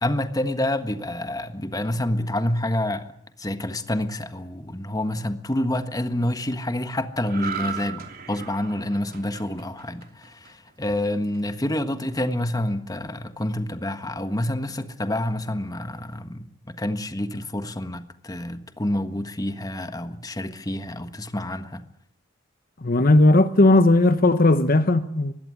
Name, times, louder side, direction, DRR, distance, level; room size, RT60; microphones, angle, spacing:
voice 1, 0.0-21.8, left 1 dB, 20° left, 1.5 m, -28 dB
sound 1, 7.2-10.7 11.1-11.4, right 6 dB, 50° right, 3.3 m, -36 dB
voice 2, 22.8-25.3, left 2 dB, 50° left, 1.0 m, -17 dB
21.0 x 16.0 x 9.8 m
head